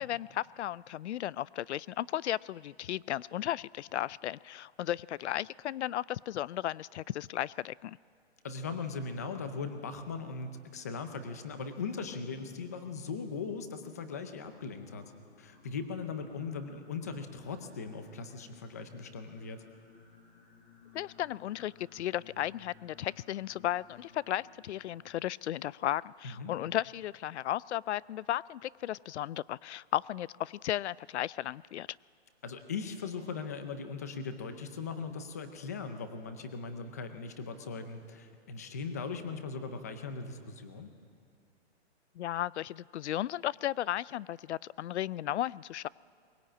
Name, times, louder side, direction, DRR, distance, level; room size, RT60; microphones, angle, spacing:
voice 1, 0.0-8.0 20.9-31.9 42.2-45.9, left 12 dB, 90° left, 23 dB, 0.5 m, -35 dB
voice 2, 8.4-15.1 15.4-19.6 26.2-26.5 32.4-40.9, left 5 dB, 15° left, 8 dB, 0.5 m, -39 dB
Singing, 14.4-25.1, left 6 dB, 50° left, 3.6 m, -58 dB
22.5 x 20.5 x 8.7 m, 2.4 s
hypercardioid pair, 180°, 33 cm